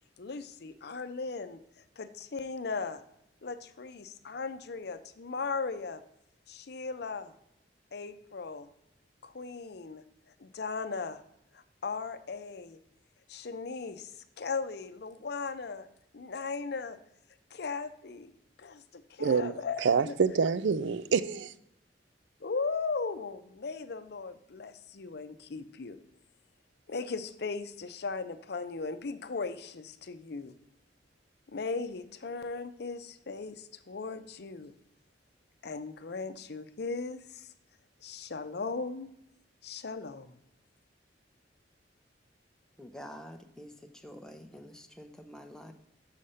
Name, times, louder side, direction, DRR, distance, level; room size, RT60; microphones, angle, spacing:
voice 1, 0.2-1.6 2.0-3.0 3.4-6.0 6.5-7.3 7.9-8.7 9.2-10.0 10.4-11.2 11.5-12.8 13.3-15.9 16.1-17.0 17.5-18.3 18.6-20.1 22.4-26.0 26.9-30.5 31.5-34.7 35.6-37.5 38.0-39.1 39.6-40.4, left 4 dB, 60° left, 0.6 m, -37 dB
voice 2, 19.2-21.5, right 5 dB, 85° right, 0.4 m, -27 dB
voice 3, 42.8-45.7, equal, 5° left, 0.7 m, -47 dB
6.5 x 6.5 x 5.6 m
head